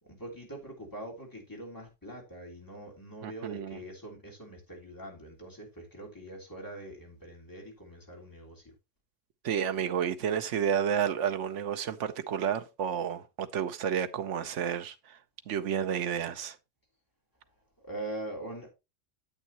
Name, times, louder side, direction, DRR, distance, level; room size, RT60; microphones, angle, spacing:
voice 1, 0.0-8.7 17.8-18.7, right 1 dB, 15° left, 3.1 m, -43 dB
voice 2, 3.2-3.8 9.4-15.2 15.5-16.6, right 8 dB, 75° right, 1.1 m, -31 dB
9.5 x 8.2 x 2.9 m
omnidirectional pair, 1.3 m